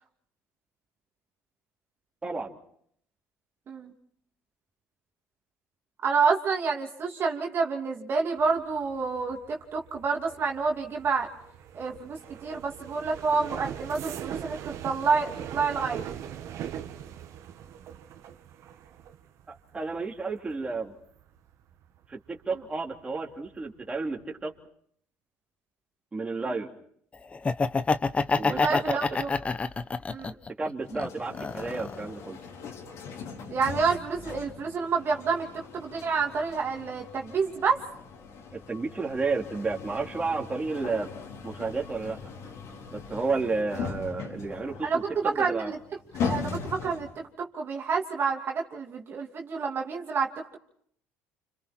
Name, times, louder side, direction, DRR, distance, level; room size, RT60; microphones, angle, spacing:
voice 1, 2.2-2.6 19.5-20.9 22.1-24.5 26.1-26.7 28.4-29.0 30.6-32.4 38.5-41.1 41.4-42.2 42.9-45.7, right 3 dB, 20° right, 0 dB, 3.2 m, -32 dB
voice 2, 6.0-11.3 11.7-16.0 26.4-26.5 28.5-29.3 30.1-30.3 33.5-37.8 44.8-45.8 46.1-50.3, right 5 dB, 40° right, 1 dB, 2.8 m, -28 dB
sound 1, 8.4-23.0 23.3-23.8 24.1-24.4, right 9 dB, 60° right, 1.8 m, -42 dB
Laughter, 27.3-30.5 30.9-32.0, left 4 dB, 20° left, 1.0 m, -27 dB
sound 2, 30.8-47.2, left 6 dB, 65° left, 4.5 m, -39 dB
29.5 x 27.0 x 4.5 m, 0.65 s
cardioid pair, 105°, 6 cm